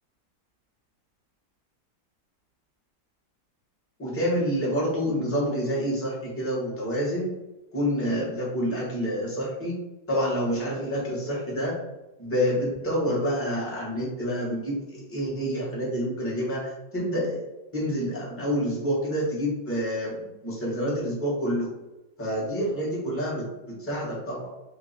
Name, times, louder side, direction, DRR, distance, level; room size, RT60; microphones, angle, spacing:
voice 1, 4.0-7.3 7.7-9.8 10.1-11.7 12.2-17.4 17.7-21.7 22.2-24.5, equal, 10° left, -7 dB, 1.0 m, -28 dB
3.0 x 2.8 x 4.1 m, 1.0 s
omnidirectional pair, 2.1 m